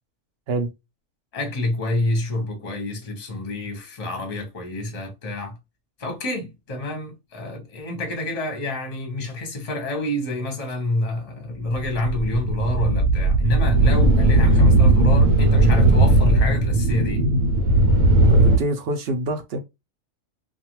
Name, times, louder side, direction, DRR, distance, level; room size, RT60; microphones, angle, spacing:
voice 1, 1.3-5.6 6.0-17.3, left 2 dB, 35° left, 0.8 m, -27 dB
sound 1, 11.8-18.6, right 2 dB, 80° right, 1.0 m, -17 dB
voice 2, 18.3-19.6, right 2 dB, 60° right, 0.7 m, -26 dB
2.5 x 2.3 x 2.9 m
omnidirectional pair, 1.4 m